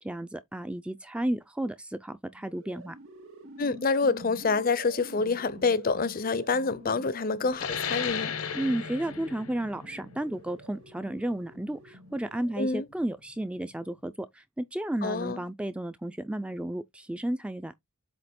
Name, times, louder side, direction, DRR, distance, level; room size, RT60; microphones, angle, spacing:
voice 1, 0.0-3.0 8.5-17.7, right 1 dB, 5° right, 0.4 m, -33 dB
sound 1, 2.3-12.8, right 1 dB, 70° right, 2.7 m, -48 dB
voice 2, 3.6-8.4 12.6-12.9 15.0-15.4, left 4 dB, 40° left, 0.6 m, -27 dB
sound 2, 7.5-12.7, left 7 dB, 85° left, 1.0 m, -36 dB
7.8 x 2.9 x 4.2 m
head